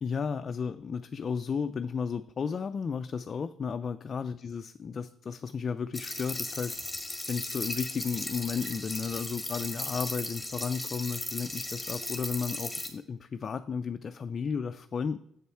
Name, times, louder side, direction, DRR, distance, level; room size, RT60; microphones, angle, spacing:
voice 1, 0.0-6.8 7.3-15.2, left 6 dB, 45° left, 8 dB, 0.3 m, -33 dB
sound 1, 5.9-12.9, left 1 dB, 5° left, 1.5 m, -36 dB
7.1 x 6.8 x 4.4 m, 0.71 s
cardioid pair, 90°, 0 cm